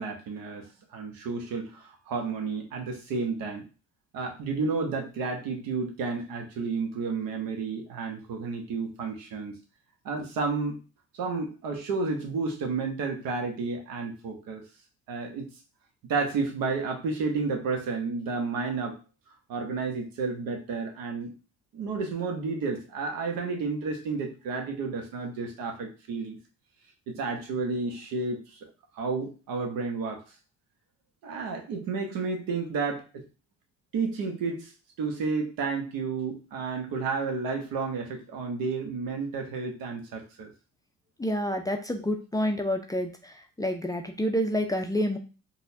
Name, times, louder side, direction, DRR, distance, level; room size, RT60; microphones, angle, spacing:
voice 1, 0.0-3.6 4.1-9.6 10.0-10.8 11.1-14.6 15.1-15.5 16.1-19.0 19.5-21.3 21.7-26.4 27.1-30.2 31.2-33.0 33.9-34.7 35.0-40.5, right 4 dB, 70° right, 3 dB, 0.9 m, -31 dB
voice 2, 41.2-45.2, equal, 10° left, 3 dB, 0.4 m, -28 dB
4.0 x 2.3 x 2.7 m, 0.33 s
supercardioid pair, 70°, 36 cm